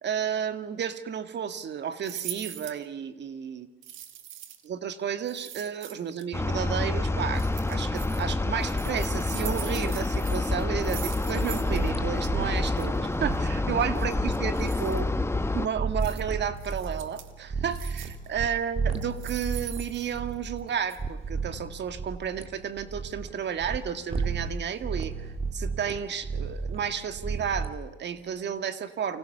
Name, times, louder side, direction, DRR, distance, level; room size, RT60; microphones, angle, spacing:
voice 1, 0.0-3.7 4.6-15.1 15.5-29.2, right 8 dB, 60° right, 10 dB, 2.0 m, -32 dB
sound 1, 2.0-2.8 3.8-4.7 5.2-6.2 7.3-8.2 8.6-11.9 12.2-12.3 12.6-12.9 14.0-15.0 16.0-16.2 16.6-17.3 17.7-18.3 18.9-20.6 20.9-21.0, right 10 dB, 85° right, 2.0 m, -42 dB
sound 2, 6.3-15.7, left 2 dB, 15° left, 1.3 m, -28 dB
sound 3, 11.4-18.5 18.7-23.8 24.1-24.6 24.8-27.8, right 4 dB, 30° right, 2.5 m, -34 dB
30.0 x 25.0 x 6.8 m, 1.2 s
cardioid pair, 90°, 20 cm